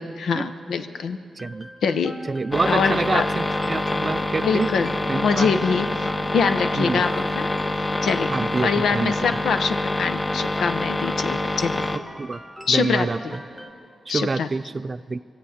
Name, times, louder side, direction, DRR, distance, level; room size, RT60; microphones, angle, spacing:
voice 1, 0.0-1.2 1.8-2.1 2.7-3.2 4.4-6.1 6.3-7.1 7.3-8.3 8.6-11.9 12.7-13.3 14.1-14.5, left 5 dB, 85° left, 8 dB, 0.8 m, -24 dB
sound 1, 1.4-13.7, equal, ahead, 1.2 m, -42 dB
voice 2, 1.4-1.7 2.3-4.7 5.1-5.5 6.8-7.0 8.3-9.1 12.2-12.4 12.7-13.2 14.1-15.2, right 3 dB, 35° right, 16 dB, 0.3 m, -26 dB
sound 2, 2.5-12.0, left 2 dB, 20° left, 0.7 m, -26 dB
23.5 x 8.2 x 6.5 m, 2.4 s
cardioid pair, 95°, 0 cm